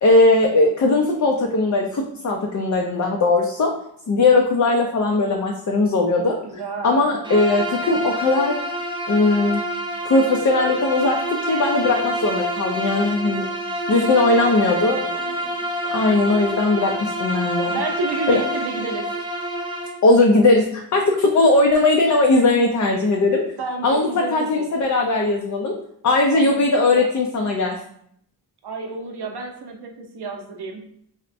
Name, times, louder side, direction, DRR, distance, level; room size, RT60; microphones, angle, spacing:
voice 1, 0.0-3.7 4.1-6.4 6.8-8.6 9.1-9.6 10.1-11.2 11.5-13.5 13.9-15.0 15.8-17.8 18.3-18.4 20.0-23.4 23.8-25.7 26.0-27.8, left 2 dB, 50° left, 1 dB, 0.4 m, -18 dB
voice 2, 6.4-7.2 14.2-15.7 17.6-19.0 23.6-24.7 26.3-26.6 26.9-27.1 28.6-30.8, right 4 dB, 85° right, 3 dB, 0.6 m, -31 dB
Bowed string instrument, 7.2-20.0, right 1 dB, 15° right, 0.4 m, -27 dB
4.1 x 2.1 x 2.5 m, 0.68 s
wide cardioid pair, 70°, 38 cm